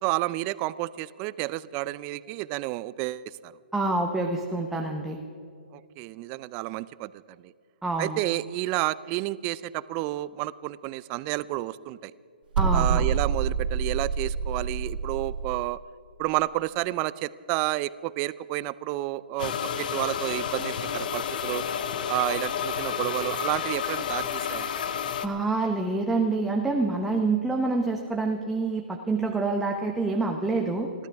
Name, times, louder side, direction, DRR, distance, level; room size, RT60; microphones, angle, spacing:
voice 1, 0.0-3.5 5.7-7.1 7.4-7.5 8.0-12.1 12.7-15.8 16.2-21.6 22.1-24.7, right 17 dB, 25° right, 18 dB, 0.4 m, -30 dB
voice 2, 3.7-5.2 7.8-8.2 12.6-13.0 25.2-30.9, right 3 dB, 5° right, 1 dB, 0.9 m, -27 dB
sound 1, 12.5-15.6, right 6 dB, 60° right, 1.1 m, -27 dB
sound 2, 19.4-25.3, left 8 dB, 55° left, 1.0 m, -30 dB
30.0 x 12.5 x 3.5 m, 2.4 s
hypercardioid pair, 150°, 6 cm